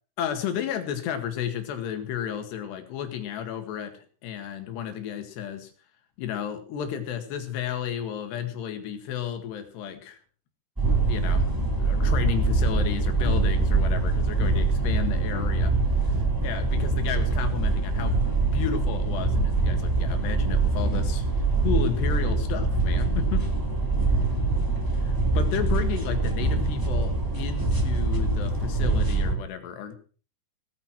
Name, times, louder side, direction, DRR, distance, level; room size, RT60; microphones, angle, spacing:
voice 1, 0.2-5.7 6.2-10.2 11.1-15.8 16.4-21.3 21.6-23.5 25.0-29.9, left 9 dB, 70° left, 7 dB, 4.0 m, -32 dB
sound 1, 10.8-29.3, right 3 dB, 5° right, 1.6 m, -24 dB
18.0 x 9.3 x 5.9 m, 0.39 s
omnidirectional pair, 5.1 m